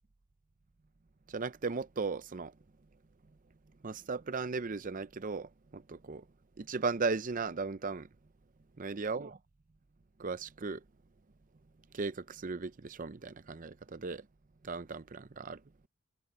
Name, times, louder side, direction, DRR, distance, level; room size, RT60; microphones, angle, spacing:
voice 1, 1.3-2.5 3.8-6.2 6.6-8.1 8.8-9.4 10.2-10.8 11.9-14.2 14.6-15.6, right 4 dB, 40° right, 0.6 m, -36 dB
head